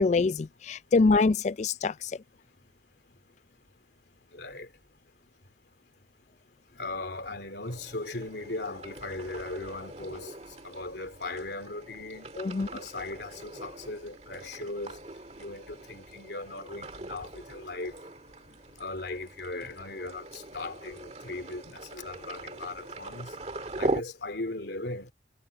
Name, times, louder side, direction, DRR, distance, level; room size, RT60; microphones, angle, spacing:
voice 1, 0.0-2.1 12.4-12.7, left 3 dB, 40° left, 0.3 m, -24 dB
voice 2, 4.3-4.7 6.8-10.3 10.6-12.3 12.7-15.0 15.4-17.9 18.8-23.4 23.8-25.1, left 2 dB, 70° left, 3.0 m, -38 dB
sound 1, 7.6-24.0, right 2 dB, 35° right, 2.0 m, -41 dB
head